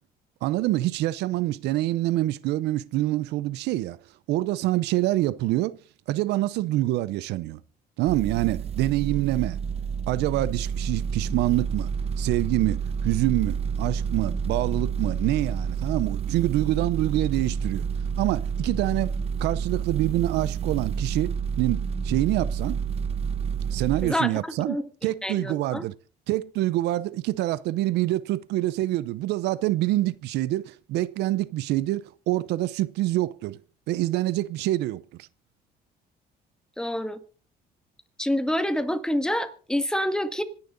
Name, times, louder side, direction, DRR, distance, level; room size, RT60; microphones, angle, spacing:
voice 1, 0.4-4.0 4.3-5.8 6.1-7.6 8.0-9.6 10.1-11.9 12.2-17.9 18.2-19.1 19.4-22.8 23.7-24.8 25.0-25.9 26.3-33.6 33.9-35.0, right 16 dB, 85° right, 0.7 m, -26 dB
sound 1, 8.1-24.1, right 6 dB, 35° right, 0.8 m, -29 dB
voice 2, 25.2-25.8 36.8-37.2 38.2-40.4, left 1 dB, 5° left, 1.9 m, -27 dB
26.0 x 10.5 x 4.0 m
cardioid pair, 110°, 17 cm